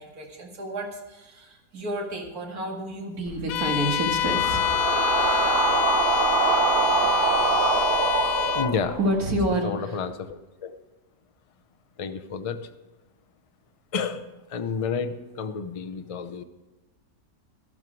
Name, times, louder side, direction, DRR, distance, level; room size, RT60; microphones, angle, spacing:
voice 1, 0.0-4.7 9.0-10.1, right 1 dB, 70° right, 0 dB, 2.6 m, -29 dB
sound 1, 3.3-9.4, right 4 dB, 85° right, 1.8 m, -25 dB
Bowed string instrument, 3.5-8.8, left 12 dB, 70° left, 0.9 m, -26 dB
voice 2, 8.5-9.0 9.6-10.7 12.0-12.7 13.9-16.4, left 5 dB, 40° left, 9 dB, 0.5 m, -30 dB
13.0 x 12.5 x 4.8 m, 1.1 s
omnidirectional pair, 1.7 m